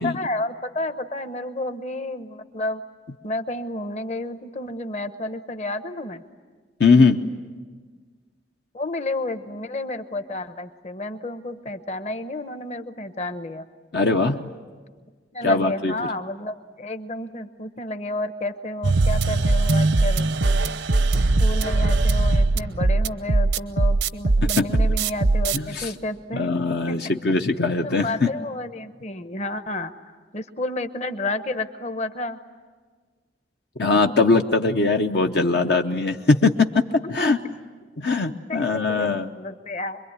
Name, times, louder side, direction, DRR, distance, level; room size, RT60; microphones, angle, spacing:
voice 1, 0.0-2.8 3.2-6.2 8.7-13.7 15.3-20.3 21.1-26.5 26.9-27.0 27.8-29.9 30.3-32.4 37.0-37.1 38.5-40.0, left 2 dB, 35° left, 9 dB, 1.0 m, -31 dB
voice 2, 6.8-7.2 13.9-14.5 15.4-15.9 24.4-24.7 25.5-25.9 26.3-28.3 33.8-36.7 37.1-37.4 38.0-39.3, left 3 dB, 60° left, 4 dB, 0.8 m, -20 dB
sound 1, 18.8-25.6, right 2 dB, 75° right, 0.8 m, -20 dB
25.5 x 23.0 x 9.7 m, 1.5 s
head